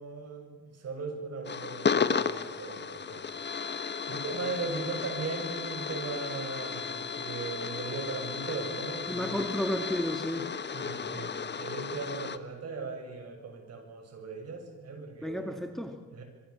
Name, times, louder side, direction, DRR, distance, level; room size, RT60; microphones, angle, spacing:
voice 1, 0.0-3.3 4.1-9.5 10.7-15.6 16.1-16.2, right 4 dB, 55° right, 4 dB, 7.6 m, -38 dB
sound 1, 1.4-12.4, left 6 dB, 35° left, 1.5 m, -34 dB
voice 2, 9.1-10.5 15.2-16.0, equal, ahead, 6 dB, 2.2 m, -32 dB
26.5 x 23.5 x 7.3 m, 1.3 s
cardioid pair, 90°, 30 cm